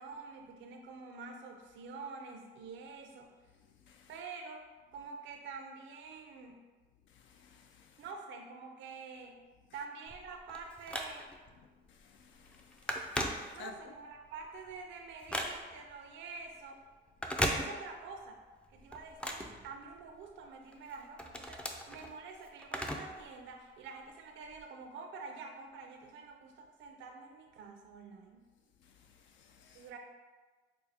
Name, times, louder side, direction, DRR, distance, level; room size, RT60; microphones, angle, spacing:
voice 1, 0.0-3.3 4.1-4.7 4.9-6.6 8.0-9.4 9.7-11.3 13.5-16.8 17.5-18.4 18.7-28.4 29.7-30.0, right 4 dB, 70° right, 3 dB, 0.4 m, -47 dB
voice 2, 7.1-8.0 11.6-13.7 28.8-29.9, left 5 dB, 75° left, 4 dB, 0.4 m, -57 dB
Telephone, 10.1-11.5 12.0-12.2 12.5-14.0 14.4-15.9 17.1-18.2 18.5-20.3 20.7-23.2 23.5-23.6 24.5-24.6, equal, 5° left, 0.3 m, -37 dB
4.6 x 2.0 x 3.4 m, 1.3 s
cardioid pair, 90°, 20 cm